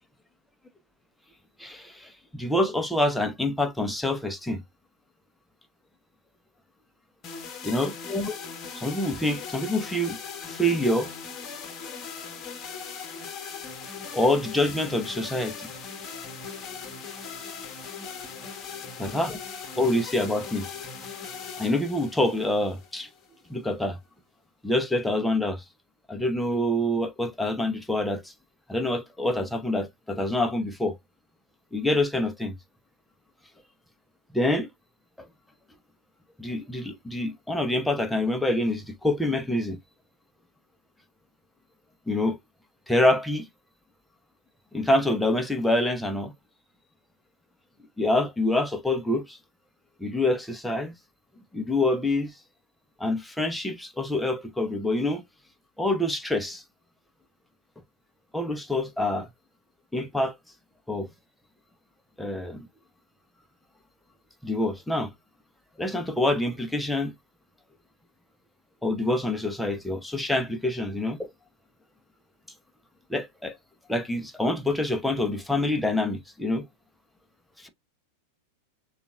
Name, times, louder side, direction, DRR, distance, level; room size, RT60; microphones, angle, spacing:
voice 1, 1.6-4.6 7.6-8.3 8.7-10.2 10.5-11.1 14.1-15.7 19.0-19.4 19.8-20.7 21.6-23.1 23.5-24.0 24.6-25.6 26.1-28.3 28.7-31.0 31.7-32.6 34.3-34.7 35.2-35.3 36.4-39.8 42.1-42.4 42.9-43.5 44.7-46.3 48.0-49.4 50.0-50.9 51.5-52.3 53.0-55.2 55.8-56.6 58.3-59.3 59.9-60.4 60.9-61.1 62.2-62.7 64.4-65.1 65.8-67.1 68.8-71.3 73.1-73.5 73.9-76.6 77.6-77.7, left 1 dB, 5° left, 0.8 m, -26 dB
Advanced Hardstyle Melody, 7.2-23.3, left 6 dB, 25° left, 1.1 m, -39 dB
6.8 x 2.4 x 2.3 m
figure-of-eight pair, 90°, 0 cm